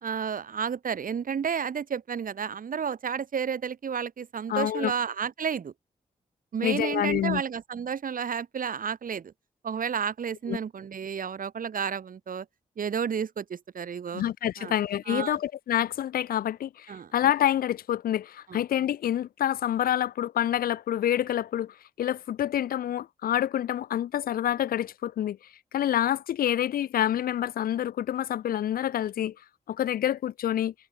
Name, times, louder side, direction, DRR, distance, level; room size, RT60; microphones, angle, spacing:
voice 1, 0.0-5.7 6.5-9.3 9.6-12.5 12.8-14.2 14.6-14.7 15.1-15.4 16.9-17.1 18.5-18.6, right 7 dB, 70° right, 2.7 m, -31 dB
voice 2, 4.5-4.9 6.6-7.4 10.5-10.6 14.1-25.4 25.7-29.3 29.7-30.7, left 11 dB, 90° left, 1.4 m, -27 dB
cardioid pair, 50°, 15 cm